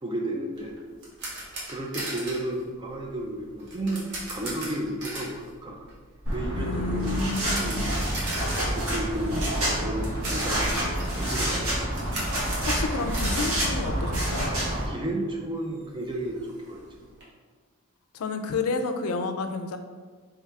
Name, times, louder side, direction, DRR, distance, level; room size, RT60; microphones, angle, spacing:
voice 1, 0.0-0.8 1.7-5.8 6.3-7.2 7.5-8.1 8.7-10.7 11.2-11.7 14.9-17.1, right 1 dB, 20° right, 0 dB, 0.5 m, -33 dB
sound 1, 0.5-14.5 14.8-14.9 15.3-15.4 15.7-17.2, right 1 dB, 50° right, 1.1 m, -39 dB
sound 2, 6.3-14.9, right 1 dB, 75° right, 1.4 m, -28 dB
voice 2, 6.5-7.9 12.7-14.5 18.1-19.8, left 4 dB, 75° left, 7 dB, 0.4 m, -30 dB
3.5 x 3.1 x 3.3 m, 1.5 s
head